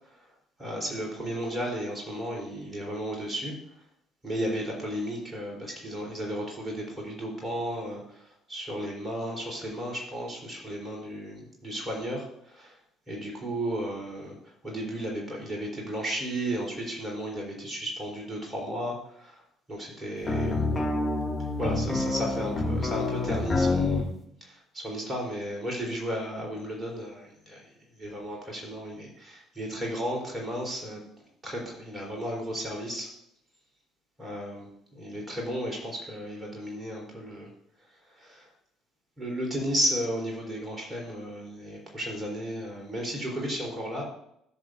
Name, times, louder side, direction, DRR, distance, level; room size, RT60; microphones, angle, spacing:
voice 1, 0.6-3.5 4.2-12.8 13.1-14.4 14.6-19.4 19.7-20.6 21.6-24.1 24.4-27.6 28.0-31.0 31.4-33.1 34.2-37.5 38.2-38.5 39.2-44.0, equal, 25° right, 0 dB, 3.6 m, -34 dB
sound 1, 20.2-24.1, left 3 dB, 25° left, 2.0 m, -27 dB
14.5 x 6.7 x 2.6 m, 0.74 s
figure-of-eight pair, 50°, 0 cm